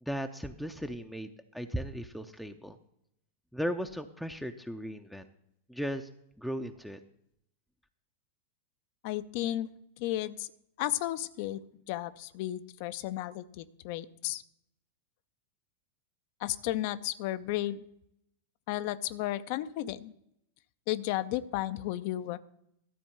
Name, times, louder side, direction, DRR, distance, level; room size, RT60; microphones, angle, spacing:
voice 1, 0.0-2.8 3.5-5.3 5.7-6.1 6.4-7.0, equal, ahead, 5 dB, 0.6 m, -36 dB
voice 2, 9.0-9.7 10.0-10.5 10.8-11.6 11.9-14.4 16.4-17.8 18.7-20.1 20.9-22.4, left 14 dB, 45° left, 13 dB, 0.5 m, -33 dB
13.0 x 4.3 x 7.1 m, 0.77 s
figure-of-eight pair, 90°, 0 cm